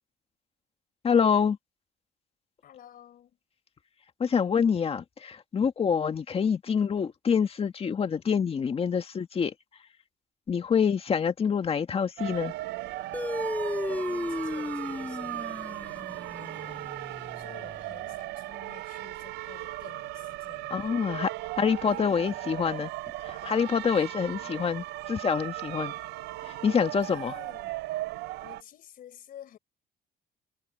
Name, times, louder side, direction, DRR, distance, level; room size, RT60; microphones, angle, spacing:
voice 1, 1.0-1.6 4.2-9.5 10.5-12.5 20.7-21.3 21.6-22.9 23.2-25.9 26.5-27.4, left 6 dB, 35° left, 1.8 m, -26 dB
voice 2, 2.6-3.4 13.9-16.8 17.4-21.0 21.9-22.6 24.2-24.6 27.0-27.8 28.4-29.6, left 10 dB, 60° left, 4.6 m, -51 dB
sound 1, 12.2-28.6, right 17 dB, 85° right, 0.6 m, -37 dB
sound 2, 13.1-18.0, left 1 dB, 10° left, 2.9 m, -35 dB
cardioid pair, 110°, 17 cm